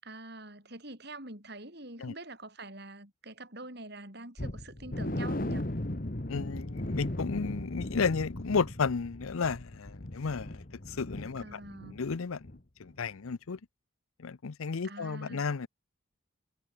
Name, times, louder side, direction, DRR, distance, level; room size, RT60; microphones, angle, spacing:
voice 1, 0.0-5.7 11.4-12.0 14.8-15.5, right 2 dB, 50° right, 7.3 m, -45 dB
sound 1, 4.4-12.1 12.4-12.6 13.0-13.1, left 1 dB, 40° left, 1.5 m, -37 dB
voice 2, 6.3-12.4 12.8-13.6 14.2-15.7, left 5 dB, 90° left, 0.6 m, -33 dB
head